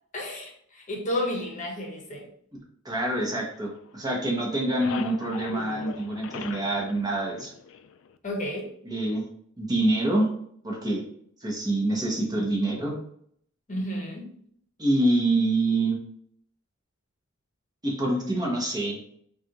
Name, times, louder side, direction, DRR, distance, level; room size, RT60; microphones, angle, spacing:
voice 1, 0.1-2.3 8.2-8.7 13.7-14.3, left 1 dB, 40° left, 0 dB, 0.9 m, -32 dB
voice 2, 2.8-7.5 8.8-9.2 9.6-10.3 10.6-11.0 11.4-12.9 14.8-16.0 17.8-19.0, right 2 dB, 20° right, -2 dB, 0.9 m, -26 dB
sound 1, 3.0-4.2 4.4-8.1, left 7 dB, 65° left, 0.3 m, -40 dB
5.6 x 2.4 x 2.9 m, 0.66 s
head